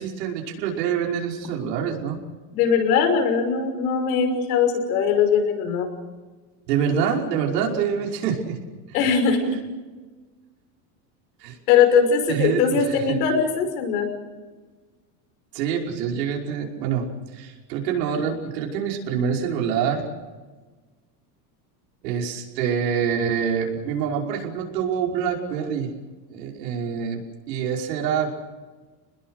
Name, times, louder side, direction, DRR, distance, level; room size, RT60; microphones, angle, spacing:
voice 1, 0.0-2.2 6.7-8.6 9.0-9.1 11.4-11.6 12.3-13.2 15.5-17.1 17.3-20.1 22.0-25.9 26.3-28.3, right 7 dB, 85° right, 0 dB, 5.6 m, -26 dB
voice 2, 2.5-5.9 8.9-9.6 11.7-14.1, left 6 dB, 65° left, 6 dB, 6.0 m, -20 dB
28.0 x 21.0 x 6.5 m, 1.3 s
supercardioid pair, 175°, 48 cm